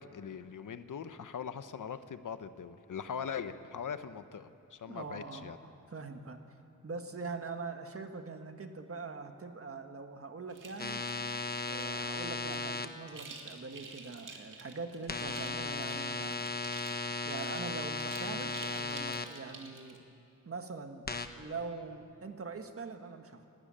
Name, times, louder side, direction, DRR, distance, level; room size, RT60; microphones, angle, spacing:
voice 1, 0.0-5.6, left 7 dB, 75° left, 11 dB, 0.9 m, -41 dB
voice 2, 4.8-5.5 5.9-6.6 6.8-11.1 11.7-16.5 17.2-20.1 20.4-21.1 21.4-23.5, right 4 dB, 45° right, 6 dB, 1.5 m, -43 dB
sound 1, 10.5-20.0, right 4 dB, 80° right, 2.3 m, -51 dB
sound 2, 10.8-12.9 15.1-19.2 21.1-21.3, left 3 dB, 30° left, 1.0 m, -36 dB
30.0 x 12.0 x 8.8 m, 2.5 s
wide cardioid pair, 140°, 31 cm